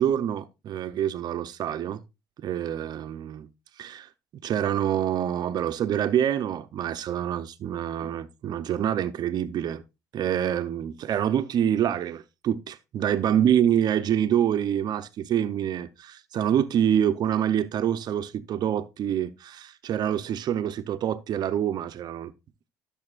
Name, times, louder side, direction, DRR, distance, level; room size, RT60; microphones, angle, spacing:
voice 1, 0.0-2.0 2.4-3.5 3.8-4.1 4.4-9.8 10.1-22.3, right 10 dB, 50° right, 0.7 m, -26 dB
13.5 x 7.0 x 2.4 m
supercardioid pair, 90°, 9 cm